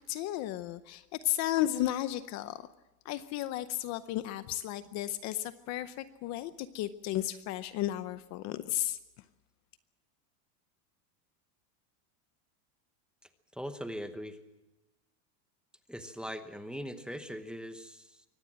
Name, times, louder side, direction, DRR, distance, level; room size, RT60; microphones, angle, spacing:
voice 1, 0.0-2.6 3.0-9.0, left 14 dB, 35° left, 13 dB, 0.7 m, -34 dB
voice 2, 13.5-14.4 15.9-18.2, equal, ahead, 8 dB, 0.9 m, -40 dB
24.0 x 18.0 x 7.5 m, 1.0 s
supercardioid pair, 165°, 46 cm